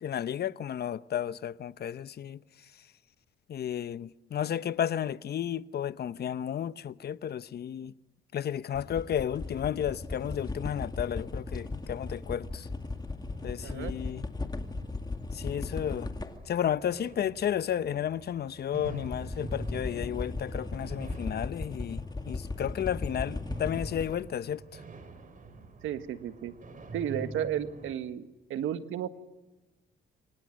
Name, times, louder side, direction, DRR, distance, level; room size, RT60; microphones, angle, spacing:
voice 1, 0.0-2.4 3.5-7.9 8.3-12.7 13.4-14.2 15.3-16.1 16.5-24.8, left 9 dB, 55° left, 0.8 m, -33 dB
sound 1, 8.7-16.5 18.8-24.1, left 3 dB, 20° left, 2.3 m, -37 dB
sound 2, 11.0-27.9, right 2 dB, 40° right, 4.6 m, -47 dB
voice 2, 13.6-13.9 25.8-26.5 26.9-29.1, right 10 dB, 85° right, 1.6 m, -33 dB
29.0 x 25.0 x 6.4 m
cardioid pair, 90°, 20 cm